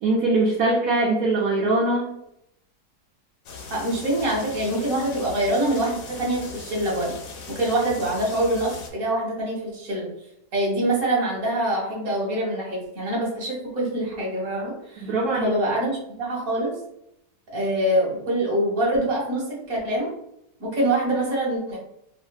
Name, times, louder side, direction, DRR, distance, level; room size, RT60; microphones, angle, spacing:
voice 1, 0.0-2.1 15.0-15.5, right 2 dB, 70° right, -4 dB, 0.9 m, -22 dB
sound 1, 3.5-8.9, left 4 dB, 70° left, 0.8 m, -39 dB
voice 2, 3.7-7.1 7.5-10.1 10.5-15.1 15.4-16.7 17.5-20.1 20.6-21.8, right 1 dB, 40° right, -3 dB, 1.0 m, -25 dB
2.7 x 2.6 x 2.3 m, 0.78 s
omnidirectional pair, 1.8 m